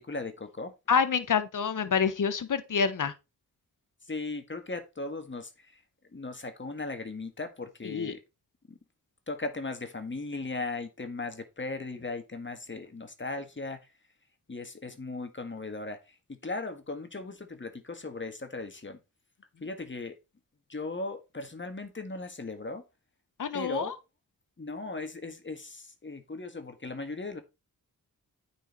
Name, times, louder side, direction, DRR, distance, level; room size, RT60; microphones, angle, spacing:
voice 1, 0.0-0.7 4.0-5.8 6.1-8.2 8.7-8.8 9.3-13.9 14.5-19.0 19.6-20.2 20.7-22.8 23.5-23.9 24.6-27.4, left 3 dB, 35° left, 1.7 m, -37 dB
voice 2, 0.9-3.1 7.9-8.1 23.4-23.9, left 6 dB, 60° left, 1.1 m, -27 dB
9.2 x 4.7 x 4.5 m
cardioid pair, 55°, 35 cm